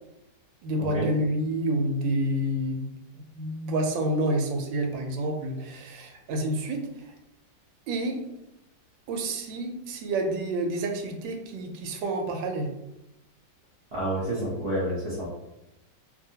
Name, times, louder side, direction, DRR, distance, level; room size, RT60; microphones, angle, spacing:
voice 1, 0.6-2.9 3.1-7.1 7.9-8.2 9.1-12.7, right 1 dB, 90° right, 3 dB, 1.3 m, -29 dB
voice 2, 13.9-15.2, right 1 dB, 60° right, -9 dB, 0.4 m, -29 dB
2.7 x 2.6 x 2.7 m, 0.89 s
omnidirectional pair, 2.0 m